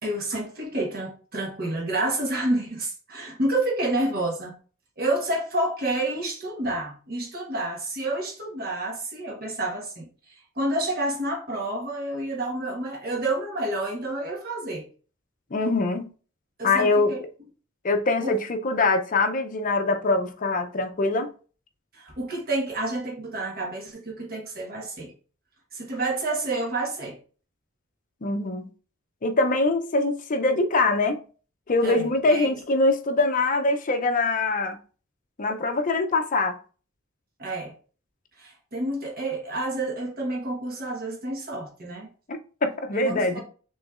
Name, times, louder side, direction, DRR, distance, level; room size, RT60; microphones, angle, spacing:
voice 1, 0.0-4.5 5.0-14.9 16.6-17.2 18.2-18.4 21.9-25.1 25.7-27.2 31.8-32.5 37.4-37.7 38.4-42.1 42.9-43.4, right 2 dB, 50° right, 1.4 m, -29 dB
voice 2, 15.5-16.1 16.6-17.2 17.8-21.3 28.2-28.7 29.2-31.2 31.7-34.8 35.4-36.6 42.3-43.4, left 3 dB, 40° left, 0.6 m, -23 dB
6.3 x 3.1 x 2.4 m
head